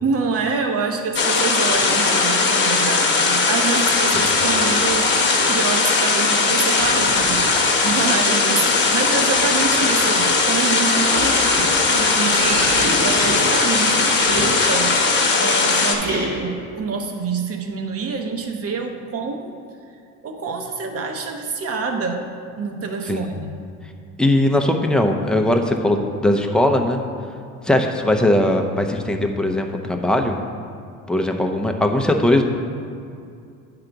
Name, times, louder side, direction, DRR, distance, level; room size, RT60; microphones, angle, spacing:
voice 1, 0.0-12.7 13.0-15.1 15.4-19.5 20.2-23.5, right 4 dB, 45° right, 4 dB, 0.9 m, -26 dB
sound 1, 1.1-15.9, left 4 dB, 35° left, 1.1 m, -18 dB
sound 2, 3.7-5.6 6.5-7.8 8.5-15.0 16.0-16.6, right 1 dB, 85° right, 1.9 m, -30 dB
voice 2, 24.2-27.0 27.6-30.4 31.1-32.4, left 1 dB, ahead, 3 dB, 0.5 m, -19 dB
9.5 x 3.9 x 4.6 m, 2.4 s
cardioid pair, 110°, 33 cm